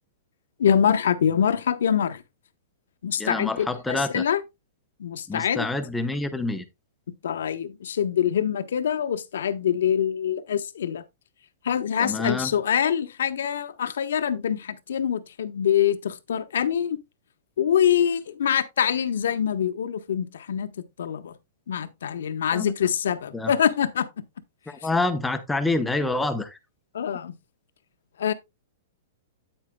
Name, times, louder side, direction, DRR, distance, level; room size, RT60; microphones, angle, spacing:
voice 1, 0.6-2.2 3.0-4.4 5.0-5.7 7.2-11.0 11.6-17.0 17.6-20.7 21.0-21.3 21.7-24.1 26.9-27.3 28.2-28.3, left 8 dB, 80° left, 1.0 m, -24 dB
voice 2, 3.2-4.2 5.3-6.6 12.0-12.5 22.5-22.7 23.3-23.5 24.7-26.6, left 2 dB, 5° left, 0.7 m, -27 dB
9.0 x 8.8 x 2.2 m
supercardioid pair, 170°, 0 cm